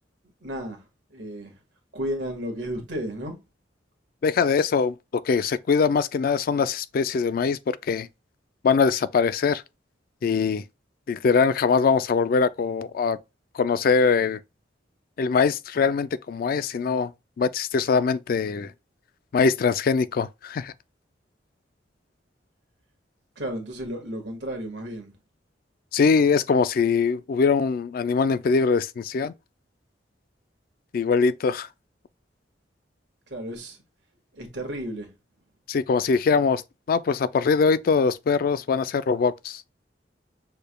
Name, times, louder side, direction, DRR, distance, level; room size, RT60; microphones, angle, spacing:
voice 1, 0.4-0.8 1.1-1.5 1.9-3.3 23.4-25.1 33.3-33.8 34.3-35.1, equal, 70° right, 1.6 m, -33 dB
voice 2, 4.2-8.1 8.6-9.6 10.2-10.6 11.1-13.2 13.5-14.4 15.2-17.1 17.4-18.7 19.3-20.7 25.9-29.3 30.9-31.7 35.7-36.6 36.9-39.6, left 5 dB, 50° left, 0.3 m, -22 dB
6.6 x 3.3 x 2.2 m
head